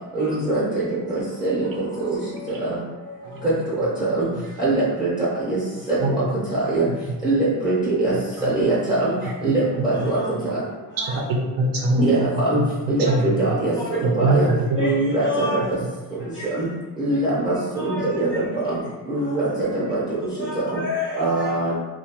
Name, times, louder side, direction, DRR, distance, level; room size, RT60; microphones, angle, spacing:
voice 1, 0.1-1.7 2.1-2.2 2.6-2.8 3.4-4.3 4.6-5.1 5.4-5.6 5.9-6.0 6.5-6.9 7.2-8.1 8.4-9.1 9.4-10.2 10.4-10.6 12.0-12.6 12.9-14.5 14.8-15.8 16.5-16.7 17.0-18.8 19.1-20.0 20.6-20.8 21.2-21.7, right 2 dB, 10° right, -11 dB, 0.6 m, -22 dB
voice 2, 1.7-2.7 3.0-3.6 9.9-10.3 10.9-11.2 12.1-12.2 13.0-13.1 13.8-13.9 14.8-15.7 16.2-16.5 17.1-17.2 17.7-18.4 18.6-18.7 19.2-19.4 20.4-21.5, left 3 dB, 30° left, -7 dB, 0.4 m, -32 dB
voice 3, 6.0-6.3 7.1-7.2 8.4-8.7 9.2-9.6 10.5-10.6 11.1-13.6 14.0-14.8, right 1 dB, 60° right, -1 dB, 0.5 m, -24 dB
2.7 x 2.2 x 2.9 m, 1.2 s
cardioid pair, 165°, 40 cm